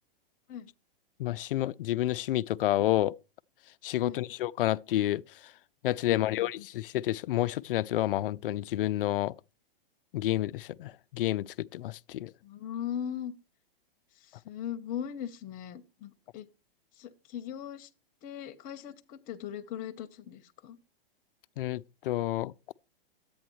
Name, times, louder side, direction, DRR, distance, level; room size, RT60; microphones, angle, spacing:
voice 1, 1.2-3.1 3.8-5.5 5.8-9.4 10.1-12.3 21.6-22.7, left 14 dB, 65° left, 0.4 m, -30 dB
voice 2, 6.0-6.7 12.4-13.3 14.4-16.5 17.0-17.9 18.2-20.8, left 9 dB, 30° left, 0.9 m, -39 dB
11.0 x 8.6 x 3.1 m
hypercardioid pair, 135°, 30 cm